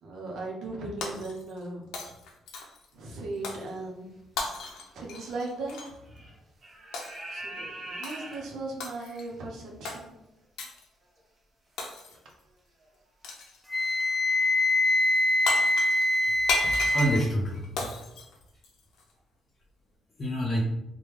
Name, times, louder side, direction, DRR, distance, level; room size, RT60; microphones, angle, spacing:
voice 1, 0.0-1.9 2.9-4.1 4.9-5.8 6.1-6.2 7.3-10.1, right 2 dB, 75° right, -1 dB, 0.8 m, -37 dB
Shatter, 1.0-1.7 1.9-2.9 3.4-3.7 4.4-5.9 6.9-7.3 8.0-8.4 8.8-9.3 9.8-10.0 10.6-10.9 11.8-12.3 13.2-13.6 15.2-15.3 15.5-19.0, left 3 dB, 85° left, 0.5 m, -35 dB
sound 1, 3.8-4.0 5.1-5.2 6.1-6.4 6.6-9.4 11.2-11.3 11.8-11.9 12.8-13.1 13.4-13.7 13.9-14.0, right 1 dB, 45° right, 1.1 m, -42 dB
Wind instrument woodwind instrument, 13.7-17.2, left 1 dB, 10° left, 0.4 m, -24 dB
voice 2, 16.6-17.9 20.2-20.7, equal, 40° left, -3 dB, 0.7 m, -28 dB
3.4 x 2.2 x 3.1 m, 0.90 s
cardioid pair, 90°, 0 cm